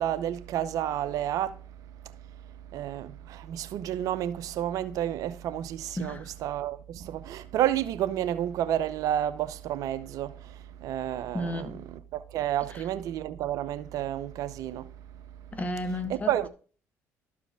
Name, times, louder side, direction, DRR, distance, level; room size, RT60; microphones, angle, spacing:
voice 1, 0.0-1.6 2.7-14.9 15.8-16.5, right 11 dB, 70° right, 0.7 m, -31 dB
voice 2, 6.0-6.3 11.3-11.8 12.7-12.9 15.5-16.5, left 1 dB, 25° left, 1.7 m, -33 dB
13.0 x 4.8 x 3.4 m
supercardioid pair, 75°, 6 cm